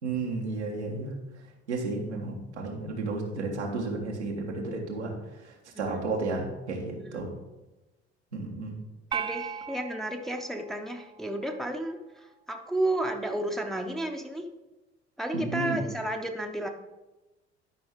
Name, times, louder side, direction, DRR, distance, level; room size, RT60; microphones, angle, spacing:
voice 1, 0.0-1.2 1.7-7.3 8.3-8.7 15.3-15.8, right 3 dB, 85° right, -1 dB, 1.5 m, -33 dB
voice 2, 9.1-14.5 15.2-16.7, right 1 dB, ahead, 3 dB, 1.0 m, -32 dB
sound 1, 9.1-11.6, right 7 dB, 15° right, 0.3 m, -38 dB
12.0 x 5.4 x 3.7 m, 1.1 s
figure-of-eight pair, 60°, 33 cm